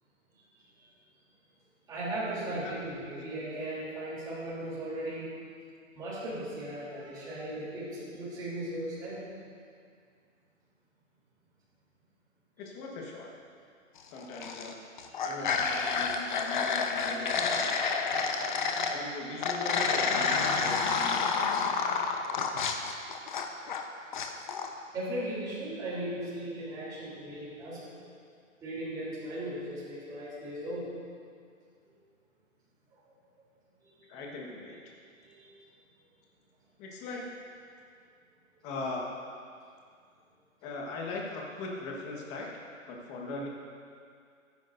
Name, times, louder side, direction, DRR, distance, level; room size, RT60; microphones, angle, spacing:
voice 1, 1.9-5.3 5.9-9.2 24.9-27.8 28.6-30.9 33.8-33.9 35.2-35.5, right 1 dB, 10° right, -9 dB, 3.4 m, -37 dB
voice 2, 2.4-2.8 12.6-13.3 14.0-14.8 15.2-17.9 18.9-21.8 34.1-34.9 36.8-37.3 38.6-39.0 40.6-42.5 42.9-43.5, left 2 dB, 15° left, -1 dB, 1.4 m, -40 dB
sound 1, 14.2-14.7 15.0-18.9 19.4-23.8 24.1-24.7, left 5 dB, 35° left, 0.9 m, -29 dB
22.5 x 10.0 x 2.7 m, 2.3 s
hypercardioid pair, 155°, 40 cm